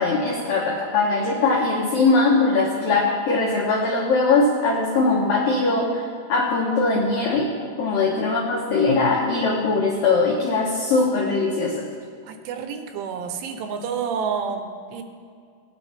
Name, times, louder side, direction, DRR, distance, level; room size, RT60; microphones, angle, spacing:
voice 1, 0.0-6.0 6.3-7.5 7.8-11.9, left 3 dB, 85° left, -1 dB, 1.9 m, -21 dB
voice 2, 12.2-15.0, right 6 dB, 80° right, 6 dB, 2.7 m, -30 dB
18.0 x 9.5 x 3.3 m, 2.3 s
omnidirectional pair, 5.4 m